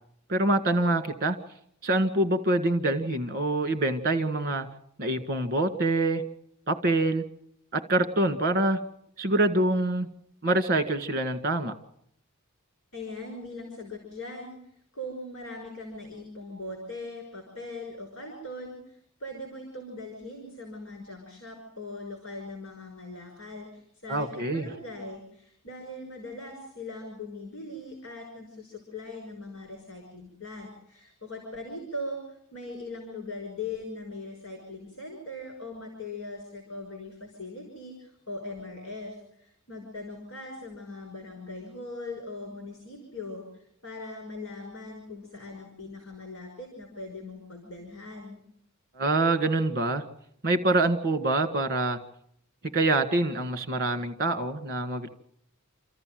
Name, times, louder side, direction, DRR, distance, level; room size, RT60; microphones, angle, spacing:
voice 1, 0.3-1.4 1.8-4.7 5.0-6.2 6.7-7.2 7.7-8.8 9.2-10.1 10.4-11.7 24.1-24.7 49.0-50.0 50.4-52.0 52.7-55.1, right 2 dB, 45° right, 9 dB, 1.9 m, -25 dB
voice 2, 12.9-14.6 14.9-48.4, left 2 dB, 65° left, 2 dB, 5.7 m, -40 dB
28.5 x 14.0 x 7.7 m, 0.71 s
head